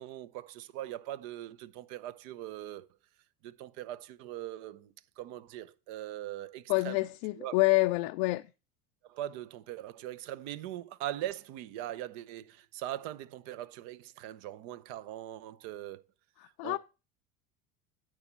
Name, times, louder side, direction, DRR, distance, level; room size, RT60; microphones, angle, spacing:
voice 1, 0.0-2.9 3.4-7.0 7.3-7.6 9.0-16.0 16.6-16.8, right 13 dB, 55° right, 0.8 m, -41 dB
voice 2, 6.7-8.4 16.6-16.8, left 23 dB, 50° left, 0.5 m, -27 dB
9.3 x 6.3 x 4.4 m
hypercardioid pair, 80°, 44 cm